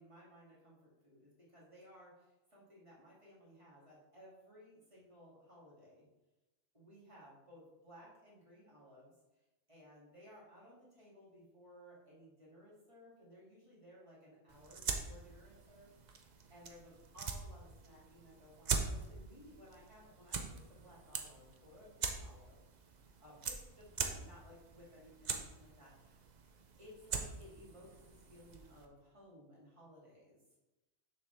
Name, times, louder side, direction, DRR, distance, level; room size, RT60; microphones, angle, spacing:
voice 1, 0.0-6.0 6.7-9.1 9.7-26.3 26.8-30.4, equal, 30° right, -7 dB, 2.4 m, -59 dB
sound 1, 14.5-28.9, right 5 dB, 45° right, 0.7 m, -43 dB
7.0 x 6.2 x 3.4 m, 1.1 s
omnidirectional pair, 1.1 m